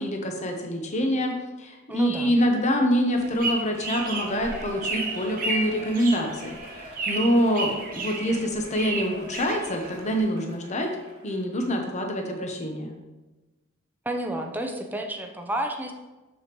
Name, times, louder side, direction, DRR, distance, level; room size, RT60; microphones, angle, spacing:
voice 1, 0.0-1.3 1.6-10.9 11.2-12.9, equal, 35° left, 3 dB, 0.8 m, -26 dB
voice 2, 1.9-2.4 14.1-15.9, right 1 dB, 10° right, 3 dB, 0.6 m, -30 dB
sound 1, 3.1-10.2, right 3 dB, 40° right, 1.0 m, -33 dB
Shout / Cheering, 3.4-11.7 12.1-12.2, right 1 dB, 25° right, 1.4 m, -45 dB
6.8 x 6.3 x 3.0 m, 1.1 s
head